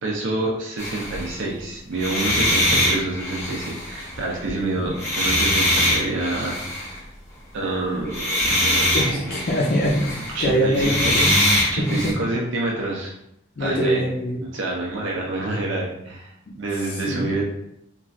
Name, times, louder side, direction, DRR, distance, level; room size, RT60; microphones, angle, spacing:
voice 1, 0.0-7.1 7.5-9.6 10.3-11.1 11.7-13.2 13.6-14.0 14.4-17.4, right 2 dB, 70° right, -2 dB, 0.5 m, -27 dB
sound 1, 0.8-1.4 1.9-4.5 4.9-7.0 8.0-12.1, left 1 dB, 15° left, 0.7 m, -23 dB
voice 2, 8.9-11.3 11.8-12.1 13.6-14.4 16.8-17.3, equal, 50° left, -4 dB, 0.4 m, -23 dB
3.0 x 2.5 x 2.4 m, 0.79 s
head